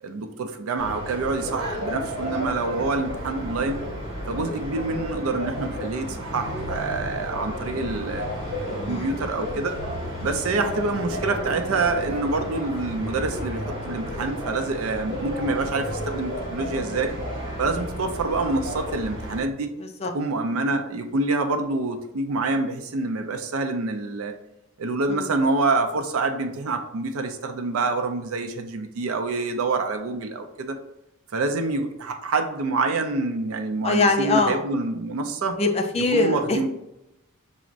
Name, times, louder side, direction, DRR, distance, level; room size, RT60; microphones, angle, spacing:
voice 1, 0.0-3.8 4.3-8.3 8.9-9.7 10.2-17.1 17.6-19.7 20.1-24.3 24.8-30.8 31.3-35.6 36.0-36.7, right 3 dB, 70° right, 6 dB, 0.4 m, -26 dB
sound 1, 0.8-19.4, equal, 40° right, 1.3 m, -32 dB
voice 2, 8.8-9.2 20.0-20.1 25.1-25.2 33.8-34.6 35.6-36.7, left 3 dB, 30° left, 5 dB, 0.4 m, -23 dB
5.8 x 2.1 x 2.5 m, 0.89 s
head